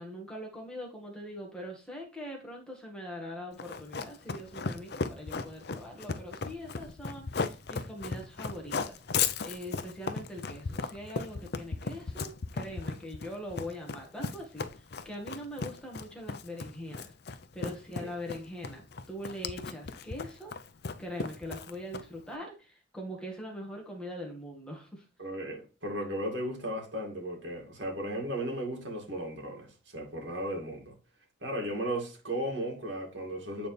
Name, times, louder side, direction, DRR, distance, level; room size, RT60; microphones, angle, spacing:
voice 1, 0.0-14.7 15.0-17.1 17.5-20.5 21.0-25.0, equal, 5° left, 1.5 m, -42 dB
Run, 3.6-22.3, left 5 dB, 55° left, 0.6 m, -36 dB
voice 2, 25.2-30.9 31.4-33.7, right 1 dB, 70° right, 2.3 m, -35 dB
8.9 x 4.0 x 3.3 m
head